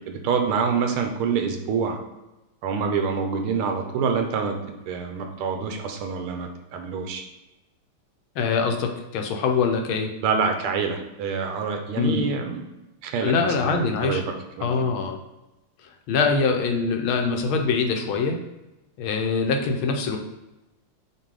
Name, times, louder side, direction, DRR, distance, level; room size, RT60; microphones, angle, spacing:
voice 1, 0.2-2.0 2.6-4.6 4.9-7.2 10.2-12.6 13.0-13.3 13.6-14.2 14.6-14.8, right 5 dB, 80° right, 4 dB, 1.6 m, -26 dB
voice 2, 8.4-10.1 11.9-12.3 13.2-14.2 14.6-15.2 16.1-18.4 19.0-20.2, left 4 dB, 75° left, 3 dB, 1.5 m, -23 dB
7.5 x 2.7 x 4.8 m, 0.99 s
omnidirectional pair, 2.4 m